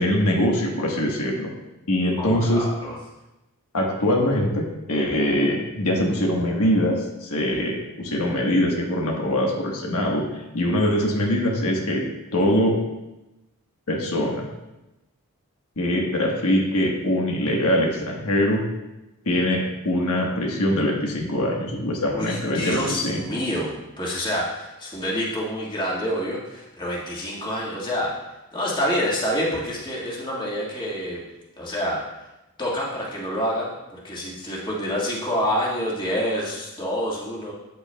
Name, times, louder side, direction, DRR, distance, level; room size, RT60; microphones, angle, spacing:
voice 1, 0.0-1.5 1.9-2.6 3.7-12.0 12.3-12.8 13.9-14.5 15.8-18.6 19.3-23.2, left 1 dB, 80° left, -1 dB, 1.2 m, -23 dB
voice 2, 2.2-2.9 22.1-28.1 28.5-31.2 31.6-32.3 32.6-37.5, equal, 20° left, -5 dB, 1.5 m, -27 dB
8.7 x 8.0 x 2.2 m, 0.99 s
head